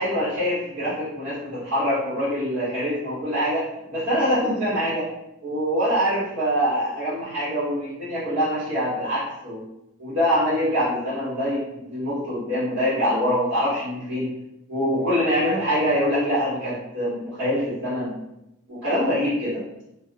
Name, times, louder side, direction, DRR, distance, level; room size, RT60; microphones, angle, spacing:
voice 1, 0.0-3.6 3.9-5.1 5.4-9.6 10.0-14.3 14.7-18.1 18.7-19.6, equal, 65° right, -12 dB, 1.0 m, -24 dB
2.4 x 2.1 x 2.5 m, 0.86 s
head